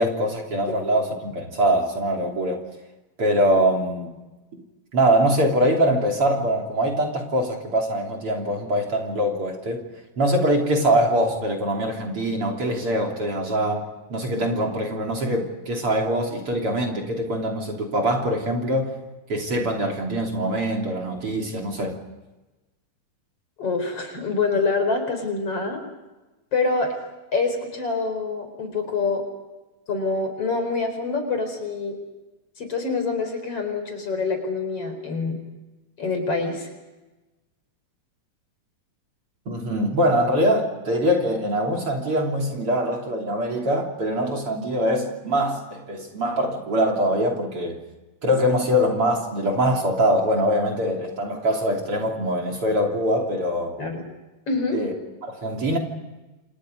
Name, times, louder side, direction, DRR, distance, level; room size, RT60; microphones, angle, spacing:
voice 1, 0.0-2.6 3.2-4.1 4.9-18.9 19.3-22.0 39.5-47.8 48.2-53.8 54.7-54.9 55.2-55.8, equal, 45° right, 1 dB, 4.0 m, -23 dB
voice 2, 23.6-25.8 26.5-26.9 27.3-29.2 29.9-32.0 32.6-35.4 36.0-36.7 53.8-54.0 54.5-54.8, left 4 dB, 45° left, 6 dB, 5.4 m, -26 dB
29.5 x 28.0 x 5.2 m, 1.1 s
omnidirectional pair, 3.7 m